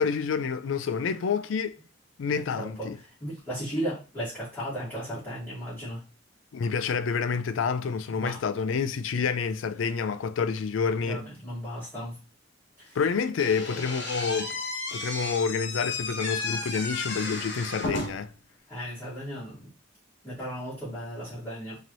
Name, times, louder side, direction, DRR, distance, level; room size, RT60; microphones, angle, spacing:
voice 1, 0.0-1.8 2.2-3.0 6.5-11.2 13.0-14.6 14.9-18.3, left 5 dB, 85° left, 0.4 m, -28 dB
voice 2, 2.2-6.0 8.1-8.4 11.0-12.2 12.8-13.0 16.8-16.9 18.7-19.7 20.2-21.8, equal, 10° left, 2.2 m, -36 dB
Slam / Squeak, 13.4-18.4, left 3 dB, 60° left, 1.0 m, -33 dB
3.9 x 2.8 x 3.0 m
head